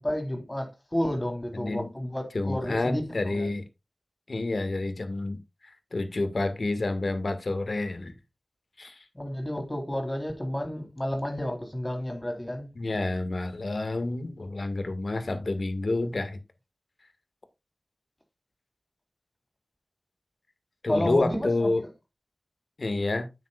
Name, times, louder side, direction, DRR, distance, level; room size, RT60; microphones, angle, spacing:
voice 1, 0.0-3.5 9.1-12.7 20.9-21.9, equal, 20° left, 3.9 m, -31 dB
voice 2, 1.5-1.9 2.3-3.6 4.3-8.2 8.8-9.0 12.8-16.4 20.8-21.8 22.8-23.3, left 2 dB, 60° left, 2.0 m, -29 dB
9.6 x 8.8 x 2.5 m
wide cardioid pair, 60°, 0 cm